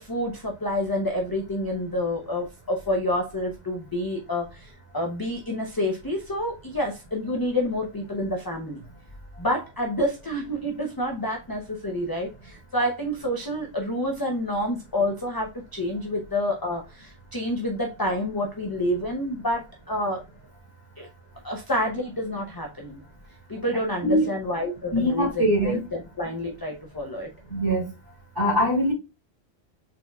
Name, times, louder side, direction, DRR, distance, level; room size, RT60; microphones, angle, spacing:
voice 1, 0.0-8.8 9.4-20.2 21.0-21.1 21.4-23.0 23.5-27.3, left 1 dB, 25° left, 0.7 m, -28 dB
voice 2, 24.9-25.8 27.5-27.9 28.4-28.9, equal, 20° right, 2.5 m, -22 dB
4.7 x 4.0 x 2.3 m
omnidirectional pair, 1.1 m